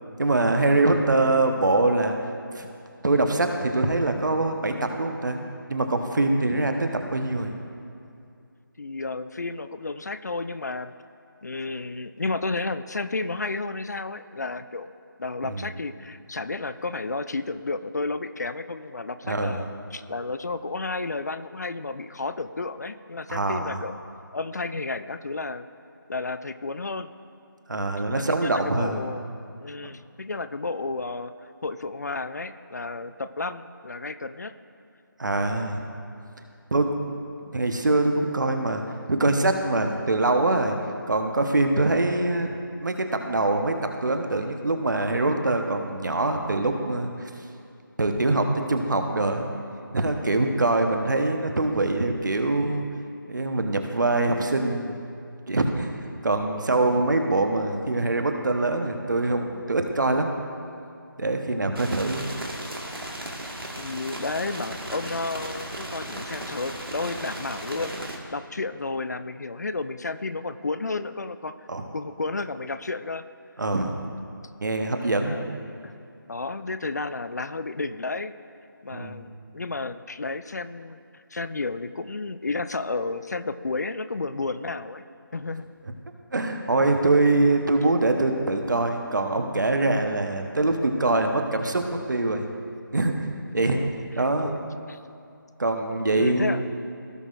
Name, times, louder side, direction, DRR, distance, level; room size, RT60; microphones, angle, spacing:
voice 1, 0.2-2.1 2.5-2.7 3.0-5.4 5.7-7.5 15.4-15.7 19.3-19.6 23.3-23.8 27.7-29.0 29.8-29.9 35.2-35.8 36.7-37.2 37.5-38.8 39.1-40.7 41.1-42.5 42.8-47.1 48.0-49.5 49.9-52.9 53.3-54.9 55.5-55.9 56.2-60.3 61.2-62.2 71.7-71.8 73.6-73.9 74.6-75.4 78.9-79.2 86.3-92.5 92.9-93.3 93.5-93.8 94.2-94.6 95.6-96.6, right 2 dB, 60° right, 5 dB, 1.0 m, -24 dB
voice 2, 8.8-10.9 11.4-14.9 15.2-23.9 24.3-25.7 26.1-27.1 28.1-29.3 29.6-31.3 31.6-34.5 63.4-71.7 71.9-73.2 75.0-75.5 75.8-75.9 76.3-78.3 78.8-85.0 85.3-85.7 93.5-94.0 94.4-95.0 95.9-96.6, left 3 dB, 50° left, 12 dB, 0.4 m, -32 dB
sound 1, 61.7-68.2, right 1 dB, 90° right, 1.7 m, -36 dB
17.0 x 6.3 x 2.5 m, 2.4 s
figure-of-eight pair, 165°, 12 cm